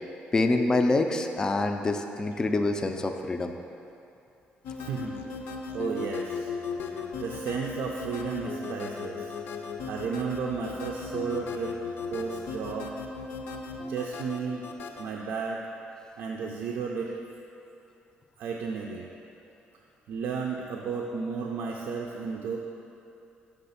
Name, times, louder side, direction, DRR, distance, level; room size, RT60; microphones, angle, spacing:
voice 1, 0.3-3.5, left 2 dB, 20° left, 5 dB, 0.3 m, -26 dB
sound 1, 4.6-15.0, left 4 dB, 75° left, 0.5 m, -37 dB
voice 2, 4.8-5.2 5.7-6.5 6.8-9.4 9.8-11.7 12.1-12.9 13.9-14.7 15.0-15.6 16.2-17.2 18.4-19.1 20.1-22.6, right 5 dB, 80° right, -1 dB, 0.4 m, -33 dB
5.8 x 3.4 x 5.5 m, 2.7 s
cardioid pair, 135°, 4 cm